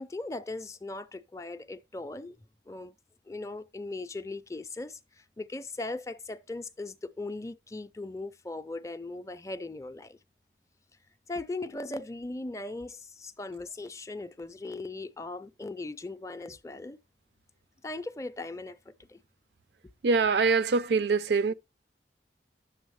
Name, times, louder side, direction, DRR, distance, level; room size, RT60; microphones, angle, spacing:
voice 1, 0.0-2.4 2.7-2.9 3.3-10.2 11.3-17.0 17.8-19.2, left 2 dB, 15° left, 0.4 m, -39 dB
voice 2, 20.0-21.5, right 4 dB, 70° right, 0.4 m, -24 dB
10.5 x 7.1 x 3.1 m
head